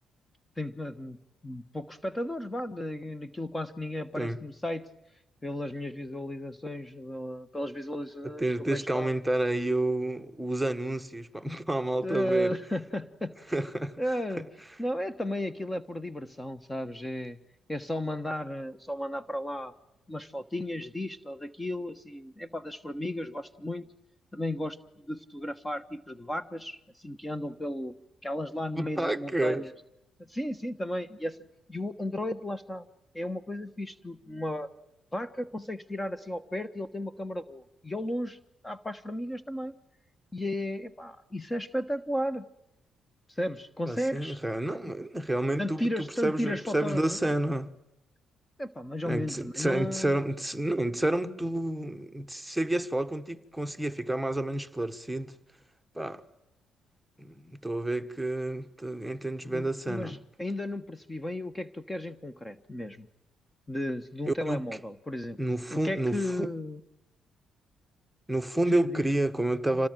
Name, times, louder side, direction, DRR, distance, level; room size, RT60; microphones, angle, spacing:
voice 1, 0.6-1.2 1.4-4.9 5.4-8.4 8.7-9.1 11.5-11.6 12.0-13.5 14.0-14.5 14.8-17.4 17.7-19.7 20.1-23.9 24.3-27.9 28.2-29.7 30.3-31.4 31.7-32.9 33.1-34.7 35.1-38.4 38.6-39.8 40.3-42.5 43.3-44.4 44.8-44.9 45.6-47.3 48.6-50.2 59.5-63.1 63.7-65.4 65.7-66.8 68.7-69.4 69.7-69.8, left 1 dB, 15° left, 1.3 m, -34 dB
voice 2, 8.2-12.6 13.5-14.0 28.8-29.6 43.9-47.7 49.0-55.3 55.9-56.2 57.2-60.2 64.3-64.6 65.4-66.5 68.3-69.9, right 1 dB, 5° right, 1.5 m, -30 dB
26.5 x 18.5 x 9.2 m
cardioid pair, 90°, 0 cm